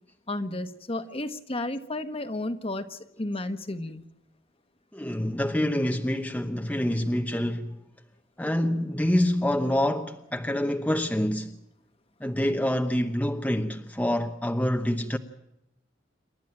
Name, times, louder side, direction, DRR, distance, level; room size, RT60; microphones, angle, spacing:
voice 1, 0.3-4.0, left 2 dB, 30° left, 1.4 m, -32 dB
voice 2, 4.9-7.8 8.4-11.6 12.2-15.2, left 1 dB, 10° left, 0.9 m, -26 dB
28.5 x 12.5 x 9.0 m
head